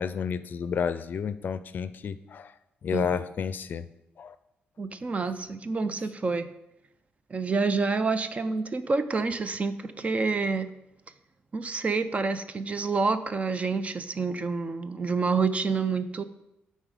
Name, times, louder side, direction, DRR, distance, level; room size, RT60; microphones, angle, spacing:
voice 1, 0.0-2.5 2.8-3.9 4.2-4.4, left 7 dB, 55° left, 13 dB, 0.4 m, -31 dB
voice 2, 4.8-6.5 7.3-10.7 11.5-16.2, right 4 dB, 35° right, 11 dB, 0.5 m, -28 dB
8.9 x 4.2 x 4.9 m, 0.87 s
cardioid pair, 80°, 4 cm